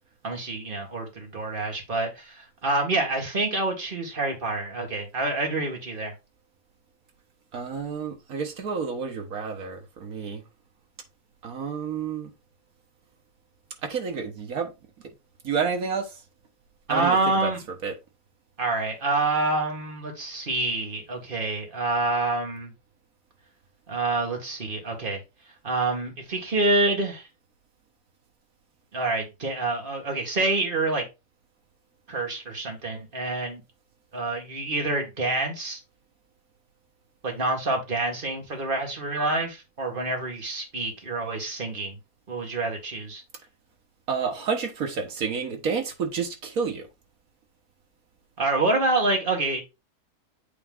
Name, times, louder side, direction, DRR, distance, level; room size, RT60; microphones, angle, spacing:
voice 1, 0.2-6.1 16.9-17.6 18.6-22.7 23.9-25.2 25.6-27.3 28.9-31.0 32.1-33.6 34.1-35.8 37.2-42.0 42.3-43.2 48.4-49.6, right 2 dB, 35° right, 1.8 m, -27 dB
voice 2, 7.5-10.4 11.4-12.3 13.8-14.7 15.4-16.1 16.9-17.2 17.4-17.5 17.8-17.9 44.1-46.9, right 6 dB, 65° right, 1.6 m, -29 dB
8.5 x 3.2 x 3.6 m
omnidirectional pair, 1.7 m